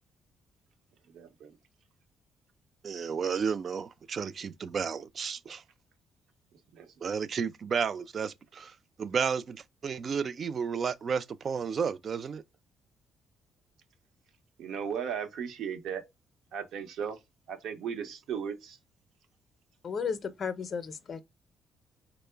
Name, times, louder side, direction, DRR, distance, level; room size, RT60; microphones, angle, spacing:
voice 1, 1.1-1.6 6.7-7.0 14.6-16.0 16.5-17.2 17.5-18.8, right 7 dB, 80° right, 0.8 m, -36 dB
voice 2, 2.8-5.6 7.0-12.4, right 6 dB, 50° right, 0.3 m, -32 dB
voice 3, 19.8-21.2, left 6 dB, 50° left, 0.5 m, -34 dB
3.6 x 2.0 x 3.3 m
cardioid pair, 90°, 0 cm